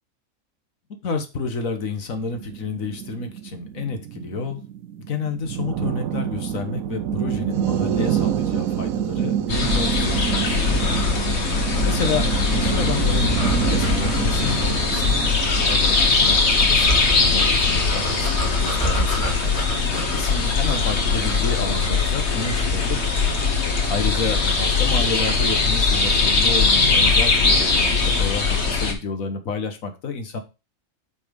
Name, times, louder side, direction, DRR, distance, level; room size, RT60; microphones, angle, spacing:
voice 1, 1.0-4.6 5.1-11.1 11.5-15.1 15.6-18.3 18.6-19.5 19.9-23.1 23.7-30.4, left 4 dB, 80° left, 7 dB, 1.7 m, -30 dB
sound 1, 2.2-17.6, right 10 dB, 85° right, 1.1 m, -27 dB
sound 2, 9.5-28.9, left 4 dB, 55° left, 1.7 m, -20 dB
sound 3, 10.8-22.7, equal, 40° left, 2.9 m, -32 dB
8.7 x 4.3 x 5.1 m, 0.29 s
omnidirectional pair, 1.4 m